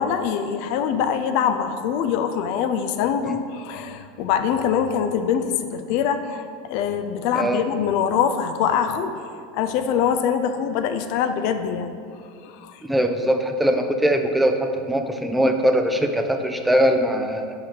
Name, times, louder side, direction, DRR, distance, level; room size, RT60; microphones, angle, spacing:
voice 1, 0.0-11.9 12.4-12.8, left 8 dB, 55° left, 8 dB, 0.4 m, -24 dB
voice 2, 7.3-7.6 12.8-17.5, equal, 5° right, 5 dB, 0.5 m, -21 dB
5.7 x 4.9 x 4.4 m, 2.3 s
hypercardioid pair, 80°, 0 cm